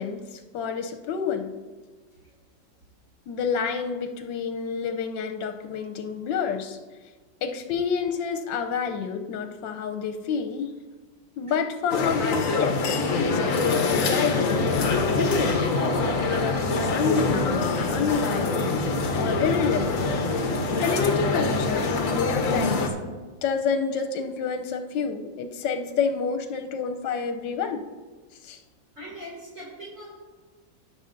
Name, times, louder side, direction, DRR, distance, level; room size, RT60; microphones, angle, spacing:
voice 1, 0.0-1.5 3.3-6.8 7.4-10.8 11.4-12.9 13.2-18.5 19.1-20.1 20.8-27.8 28.4-28.6, left 6 dB, 80° left, 6 dB, 1.3 m, -29 dB
sound 1, 11.9-22.9, left 3 dB, 55° left, 1.1 m, -25 dB
sound 2, 15.4-17.9, equal, 15° left, 2.5 m, -43 dB
voice 2, 28.9-30.1, equal, 40° right, -6 dB, 2.8 m, -41 dB
17.0 x 6.8 x 2.6 m, 1.4 s
omnidirectional pair, 2.0 m